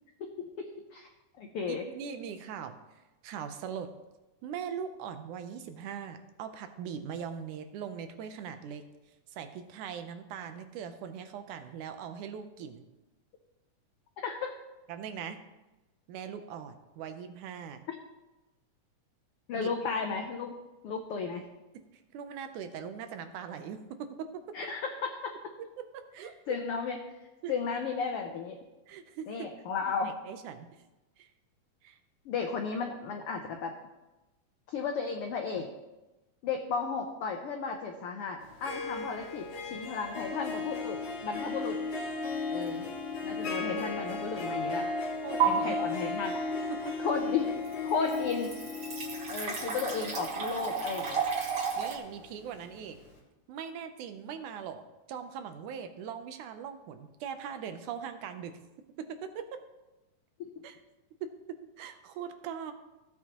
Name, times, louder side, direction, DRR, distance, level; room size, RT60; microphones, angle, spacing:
voice 1, 0.6-1.1 1.4-1.8 14.2-14.5 19.5-20.5 20.8-21.4 24.5-25.3 26.5-27.0 27.5-28.6 29.3-30.1 32.2-33.7 34.7-35.7 36.4-41.8 42.5-42.9 43.2-44.9 45.6-46.4 47.0-47.5 47.8-48.5 49.3-51.2 60.4-60.5, left 5 dB, 90° left, 3 dB, 1.2 m, -34 dB
voice 2, 1.7-3.9 4.4-8.8 9.3-12.8 14.9-15.4 16.1-17.8 19.5-19.7 21.7-24.4 25.8-26.3 27.4-27.5 28.9-29.5 30.0-30.7 31.2-31.3 31.8-32.0 45.2-45.8 46.7-46.9 51.8-53.0 53.5-58.6 59.0-59.6 60.6-60.8 61.2-62.7, right 7 dB, 80° right, 8 dB, 2.2 m, -41 dB
Harp, 38.4-52.4, left 3 dB, 40° left, 2.9 m, -35 dB
sound 1, 42.6-42.9 43.4-43.5 45.4-45.5 47.3-47.4 47.6-52.0, right 7 dB, 50° right, 2.1 m, -33 dB
15.0 x 8.3 x 3.0 m, 1.1 s
omnidirectional pair, 3.6 m